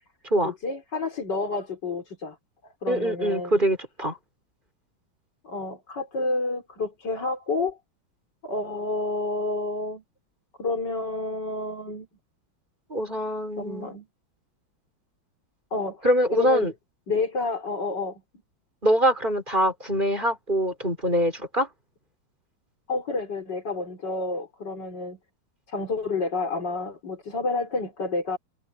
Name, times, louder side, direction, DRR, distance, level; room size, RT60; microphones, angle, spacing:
voice 1, 0.4-2.4 2.8-3.7 5.4-7.8 8.4-10.0 10.6-12.1 13.6-14.1 15.7-16.0 16.3-16.7 17.1-18.2 22.9-25.2 25.7-28.4, left 3 dB, 55° left, 4.5 m, -29 dB
voice 2, 2.9-4.2 12.9-13.9 16.0-16.7 18.8-21.7, equal, 25° right, 5.0 m, -24 dB
omnidirectional pair, 2.2 m